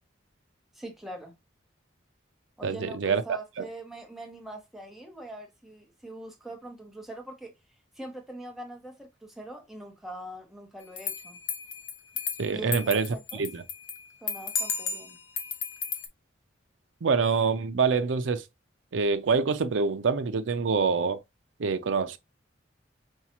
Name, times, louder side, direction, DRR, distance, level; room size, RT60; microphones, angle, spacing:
voice 1, 0.7-1.3 2.6-7.5 7.9-11.4 12.5-13.5 14.2-15.2, right 1 dB, ahead, 0.9 m, -43 dB
voice 2, 2.6-3.4 12.4-13.6 17.0-18.4 18.9-21.2 21.6-22.2, right 5 dB, 85° right, 0.5 m, -26 dB
sound 1, 11.0-14.0 14.3-16.1, left 5 dB, 80° left, 0.9 m, -33 dB
5.4 x 2.4 x 2.8 m
head